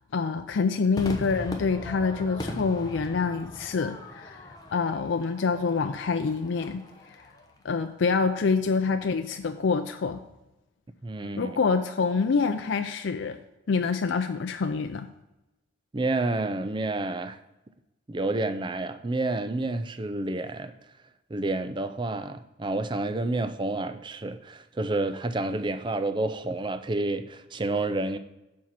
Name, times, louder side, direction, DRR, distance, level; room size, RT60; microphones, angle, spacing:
voice 1, 0.0-6.8 7.6-10.2 11.4-13.4 13.7-15.1, left 4 dB, 75° left, 0.4 m, -26 dB
Crowd / Fireworks, 1.0-7.5, left 1 dB, 20° left, 0.8 m, -40 dB
voice 2, 11.0-11.6 15.9-17.4 18.1-20.7 21.3-28.2, right 2 dB, 25° right, 0.4 m, -29 dB
7.4 x 4.6 x 5.7 m
head